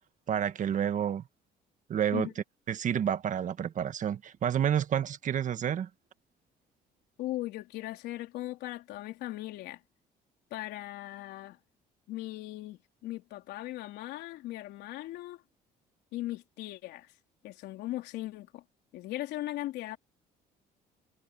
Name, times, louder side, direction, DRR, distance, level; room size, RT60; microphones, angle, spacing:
voice 1, 0.3-1.2 1.9-2.3 2.7-5.9, right 9 dB, 50° right, 1.6 m, -29 dB
voice 2, 7.2-9.8 10.5-11.6 12.1-15.4 16.1-17.1 17.4-18.6 18.9-20.0, left 16 dB, 85° left, 3.7 m, -38 dB
cardioid pair, 110°, 17 cm